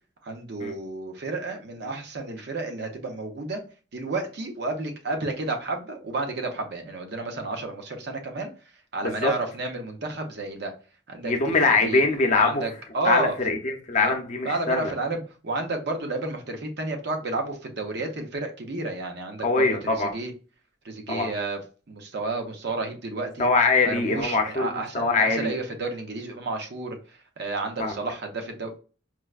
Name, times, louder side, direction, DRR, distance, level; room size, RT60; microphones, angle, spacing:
voice 1, 0.2-3.6 3.9-8.5 8.9-10.7 11.1-12.0 12.3-13.4 14.0-14.2 14.4-20.3 20.8-21.6 21.9-23.5 23.8-28.7, right 3 dB, 60° right, 4 dB, 0.7 m, -31 dB
voice 2, 11.2-12.6 13.0-14.9 19.4-20.1 21.1-21.3 23.4-25.5 27.8-27.9, left 3 dB, 40° left, 4 dB, 0.6 m, -23 dB
4.6 x 2.1 x 2.3 m, 0.35 s
head